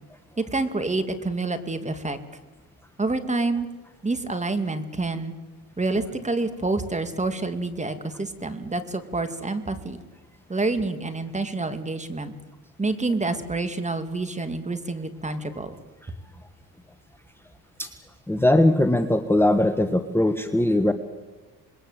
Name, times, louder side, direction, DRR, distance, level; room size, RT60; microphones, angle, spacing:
voice 1, 0.4-2.2 3.0-3.7 4.0-5.3 5.8-10.0 10.5-12.3 12.8-15.8, right 3 dB, 20° right, 9 dB, 2.6 m, -28 dB
voice 2, 18.3-20.9, left 1 dB, 5° left, 8 dB, 1.5 m, -20 dB
26.5 x 21.0 x 8.2 m, 1.3 s
supercardioid pair, 80°, 36 cm